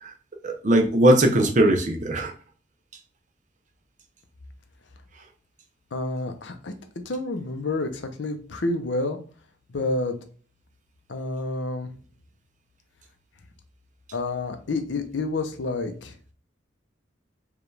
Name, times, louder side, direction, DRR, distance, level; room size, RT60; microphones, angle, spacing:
voice 1, 0.4-2.3, right 1 dB, 40° right, 3 dB, 0.6 m, -19 dB
voice 2, 5.9-6.7 7.1-9.2 9.7-10.2 11.1-11.9 14.1-16.2, left 2 dB, 70° left, 7 dB, 0.6 m, -29 dB
4.9 x 2.4 x 3.2 m, 0.41 s
head